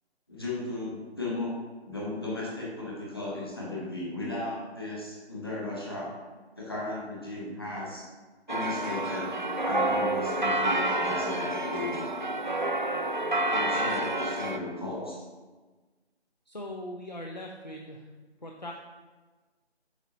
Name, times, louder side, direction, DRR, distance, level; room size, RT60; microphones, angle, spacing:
voice 1, 0.3-1.6 1.8-6.1 6.6-8.0 8.5-9.3 9.6-12.1 13.5-15.2, left 2 dB, 20° left, -5 dB, 1.2 m, -35 dB
sound 1, 8.5-14.6, right 2 dB, 45° right, 0.5 m, -29 dB
voice 2, 16.5-18.1 18.4-18.8, left 1 dB, 40° left, 2 dB, 0.5 m, -40 dB
8.0 x 5.5 x 3.0 m, 1.3 s
figure-of-eight pair, 175°, 33 cm